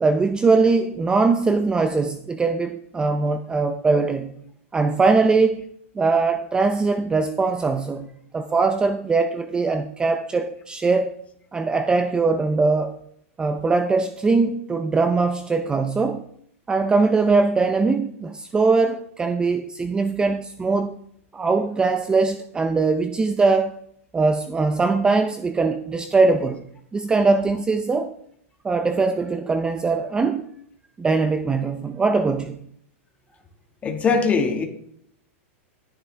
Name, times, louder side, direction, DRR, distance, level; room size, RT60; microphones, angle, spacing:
voice 1, 0.0-4.4 4.7-5.7 6.0-11.1 11.5-13.0 13.4-16.2 16.7-21.0 21.3-23.7 24.1-26.6 26.9-28.1 28.6-30.4 31.0-32.6, right 4 dB, 10° right, 0.5 m, -21 dB
voice 2, 33.8-34.6, left 5 dB, 20° left, 1.7 m, -21 dB
13.5 x 10.0 x 3.3 m
supercardioid pair, 140°, 7 cm